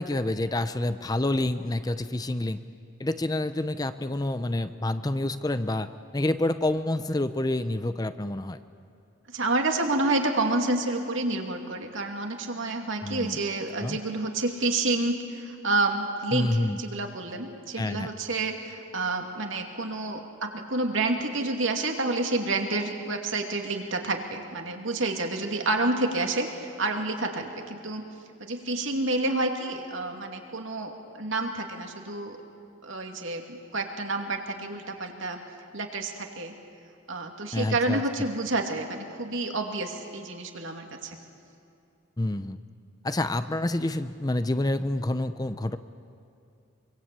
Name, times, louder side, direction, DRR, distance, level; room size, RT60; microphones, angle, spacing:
voice 1, 0.0-2.6 3.0-8.6 13.0-13.4 13.8-14.0 16.3-16.8 17.8-18.1 37.5-38.0 42.2-42.6 43.0-45.8, left 1 dB, 20° left, 11 dB, 0.6 m, -28 dB
voice 2, 9.3-28.0 28.4-32.4 32.8-35.4 35.7-36.5 37.1-41.2, right 2 dB, 70° right, 3 dB, 2.6 m, -29 dB
25.0 x 24.0 x 8.6 m, 2.5 s
head